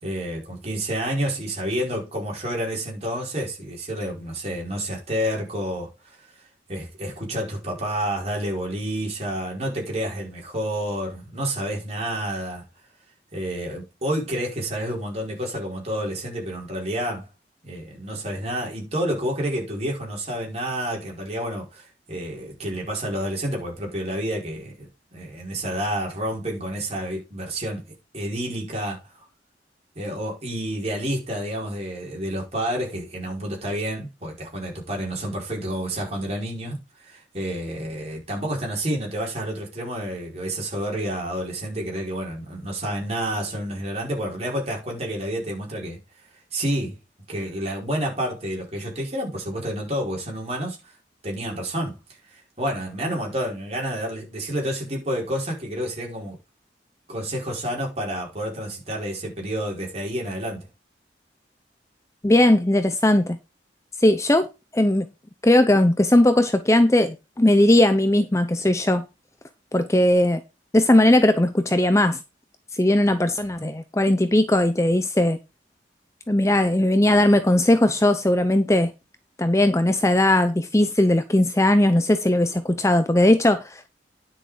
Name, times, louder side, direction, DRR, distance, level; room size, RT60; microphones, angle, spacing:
voice 1, 0.0-6.2 6.7-12.6 13.3-17.2 17.6-24.9 25.1-27.9 28.1-29.0 29.9-46.0 46.5-47.0 47.3-50.8 51.2-52.0 52.3-56.4 57.1-60.7, right 1 dB, 35° right, 5.0 m, -29 dB
voice 2, 62.2-63.4 64.0-64.5 64.7-65.1 65.4-69.0 69.7-70.4 70.7-72.2 72.7-75.4 76.3-78.9 79.4-83.8, left 1 dB, 15° left, 0.6 m, -18 dB
10.0 x 6.4 x 5.0 m
head